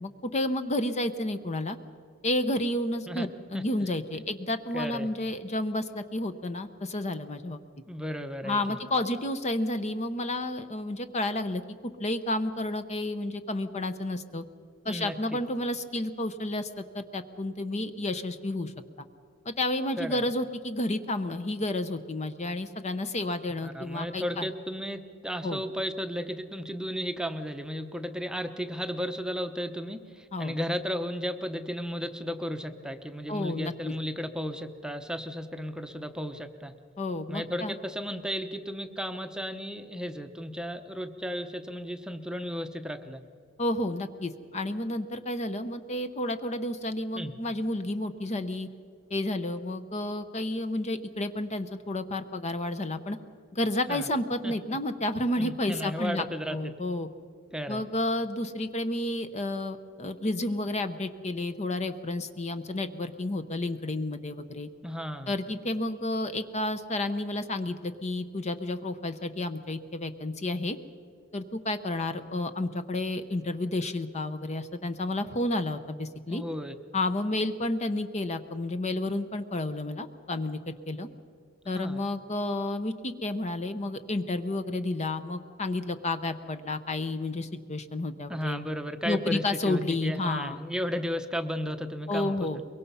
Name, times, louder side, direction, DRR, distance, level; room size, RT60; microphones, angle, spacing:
voice 1, 0.0-1.8 2.2-7.6 8.4-14.4 14.8-18.7 19.0-19.1 19.4-24.5 25.4-25.6 30.3-30.5 33.3-33.9 37.0-37.7 43.6-48.7 49.1-53.2 53.5-56.3 56.5-57.1 57.7-64.7 65.3-70.8 71.3-76.4 76.9-81.1 81.7-88.6 89.0-90.6 92.1-92.6, left 1 dB, 30° left, 9 dB, 0.8 m, -31 dB
voice 2, 3.5-3.8 4.1-4.2 4.7-5.1 7.9-8.6 14.8-15.2 20.0-20.2 23.6-36.7 37.3-43.2 47.2-47.3 53.9-54.1 54.4-54.8 55.4-56.6 57.5-57.8 64.8-65.3 76.3-76.7 81.6-82.0 88.3-92.6, equal, 5° right, 6 dB, 0.8 m, -34 dB
23.0 x 23.0 x 5.6 m, 2.1 s
head